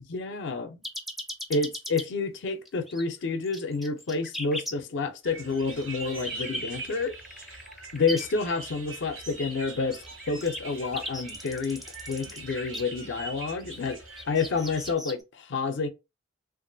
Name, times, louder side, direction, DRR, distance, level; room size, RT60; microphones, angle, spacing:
voice 1, 0.1-0.8 1.5-7.2 7.5-7.6 7.9-11.8 12.1-14.0 14.3-15.9, left 4 dB, 65° left, 0.5 m, -29 dB
sound 1, 0.8-2.0 2.7-3.0 3.4-4.7 5.6-8.2 9.5-12.8 13.6-15.2, left 1 dB, ahead, 0.4 m, -38 dB
sound 2, 5.2-14.9, right 3 dB, 85° right, 1.3 m, -42 dB
2.9 x 2.4 x 2.5 m
head